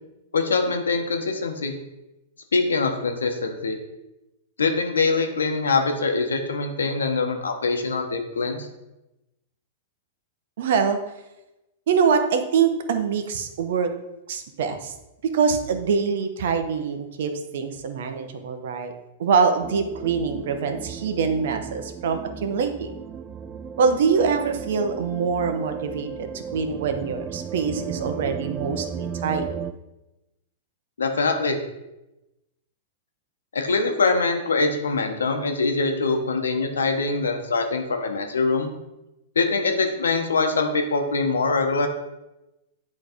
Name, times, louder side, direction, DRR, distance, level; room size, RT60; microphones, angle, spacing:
voice 1, 0.3-1.7 2.5-3.8 4.6-8.7 31.0-31.6 33.5-38.7 39.3-41.9, left 3 dB, 90° left, 5 dB, 0.9 m, -23 dB
voice 2, 10.6-11.0 11.9-13.9 14.3-14.9 15.3-18.9 19.2-22.9 23.8-29.5, right 6 dB, 65° right, 7 dB, 0.9 m, -24 dB
sound 1, 19.6-29.7, right 7 dB, 25° right, 0.3 m, -35 dB
8.1 x 3.2 x 5.0 m, 0.95 s
hypercardioid pair, 120°, 0 cm